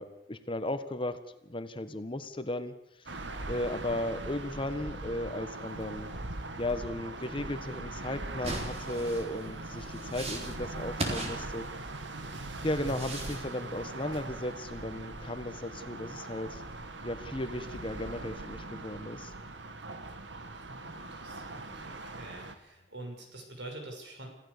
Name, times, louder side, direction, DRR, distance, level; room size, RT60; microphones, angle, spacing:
voice 1, 0.0-2.7 3.5-6.1 6.6-11.7 12.6-16.6 17.0-19.3, left 1 dB, 30° left, 10 dB, 1.4 m, -35 dB
sound 1, 3.1-22.5, right 2 dB, 90° right, 1.9 m, -41 dB
sound 2, 8.4-12.1 12.6-13.5, right 1 dB, 35° right, 3.7 m, -38 dB
voice 2, 20.7-24.3, right 1 dB, 75° right, 3 dB, 6.5 m, -46 dB
27.0 x 15.5 x 6.9 m, 0.82 s
head